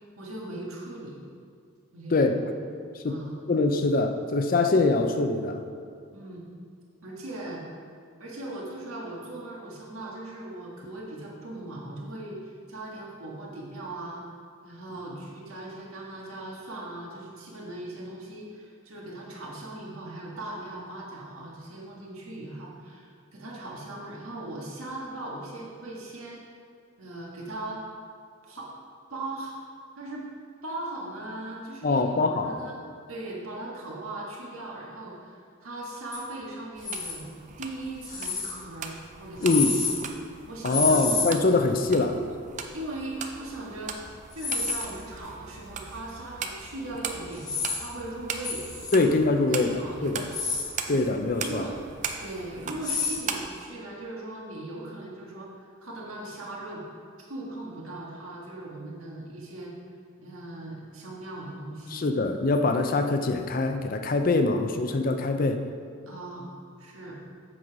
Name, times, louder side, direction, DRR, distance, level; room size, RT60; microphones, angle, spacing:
voice 1, 0.2-1.2 1.9-2.5 3.1-3.4 6.1-6.5 7.0-7.6 8.2-14.2 14.6-26.5 27.0-27.8 28.5-28.7 29.1-29.6 30.0-30.3 30.6-32.8 33.1-37.3 37.6-39.8 40.5-41.1 42.7-44.0 44.3-47.5 47.8-48.6 48.9-50.2 50.9-51.0 51.4-51.8 52.2-55.5 55.8-56.8 57.2-59.7 60.2-62.1 66.1-66.5 66.8-67.2, right 2 dB, 85° right, -3 dB, 1.7 m, -39 dB
voice 2, 3.5-5.6 31.8-32.5 39.4-39.8 40.6-42.2 48.9-50.3 50.9-51.7 61.9-65.6, left 3 dB, 40° left, 6 dB, 0.4 m, -24 dB
sound 1, 36.1-36.2 36.8-37.2 38.0-38.5 39.4-39.9 40.7-41.3 44.3-44.9 47.3-47.8 48.4-48.9 50.2-50.6 52.8-53.1, left 4 dB, 20° left, 1.2 m, -29 dB
sound 2, 36.8-53.5, right 5 dB, 35° right, 0.4 m, -39 dB
7.8 x 5.5 x 4.7 m, 2.2 s
head